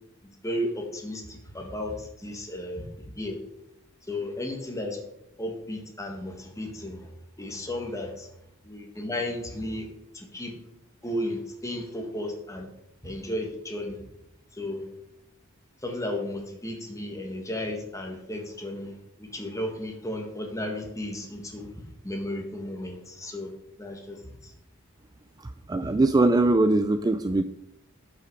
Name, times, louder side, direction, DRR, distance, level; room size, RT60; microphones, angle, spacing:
voice 1, 0.4-2.9 3.1-3.4 4.1-5.0 5.4-7.0 7.4-8.3 8.6-9.9 10.1-10.5 11.0-12.7 13.0-14.0 14.5-14.9 15.8-23.5 23.8-24.2 24.4-24.5 25.8-25.9, left 1 dB, 15° left, 3 dB, 1.6 m, -34 dB
voice 2, 25.7-27.4, right 2 dB, 20° right, 10 dB, 0.3 m, -21 dB
11.5 x 5.8 x 4.7 m, 0.84 s
head